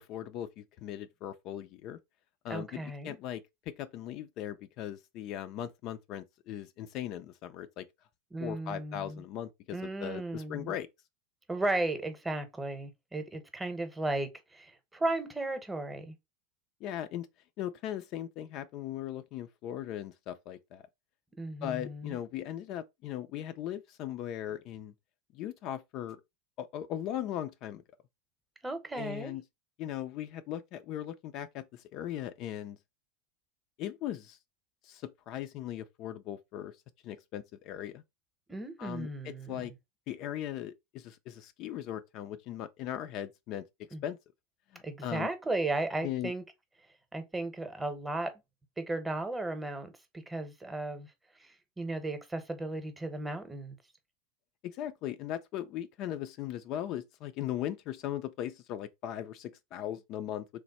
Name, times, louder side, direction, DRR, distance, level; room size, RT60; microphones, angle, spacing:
voice 1, 0.0-2.0 2.4-7.9 8.4-10.9 16.8-17.3 17.6-20.8 21.6-24.9 25.3-26.2 26.6-27.8 29.0-29.4 29.8-32.8 33.8-34.4 34.8-36.7 37.0-38.0 38.8-39.7 40.1-43.6 44.0-44.2 44.7-45.3 46.0-46.3 54.6-60.6, left 11 dB, 50° left, 0.3 m, -38 dB
voice 2, 2.5-3.2 8.3-9.2 9.7-10.7 11.5-16.1 21.4-22.2 28.6-29.3 38.5-39.6 43.9-44.0 44.8-46.4 47.1-48.3 48.8-49.9 50.3-51.1 51.4-53.8, right 2 dB, 10° right, 0.8 m, -35 dB
3.2 x 2.1 x 4.0 m
hypercardioid pair, 105°, 0 cm